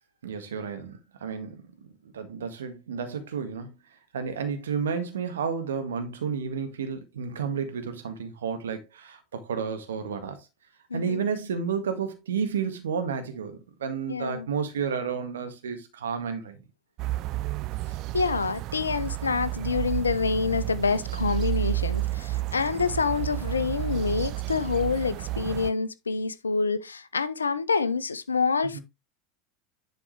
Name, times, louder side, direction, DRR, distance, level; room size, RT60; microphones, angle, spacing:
voice 1, 0.2-3.7 4.1-10.5 10.9-16.6 28.7-28.8, right 6 dB, 75° right, 1.7 m, -31 dB
voice 2, 10.9-11.2 14.1-14.5 18.1-28.8, left 4 dB, 85° left, 0.6 m, -27 dB
sound 1, 17.0-25.7, right 17 dB, 50° right, 0.3 m, -31 dB
10.5 x 4.4 x 3.2 m
figure-of-eight pair, 75°, 0 cm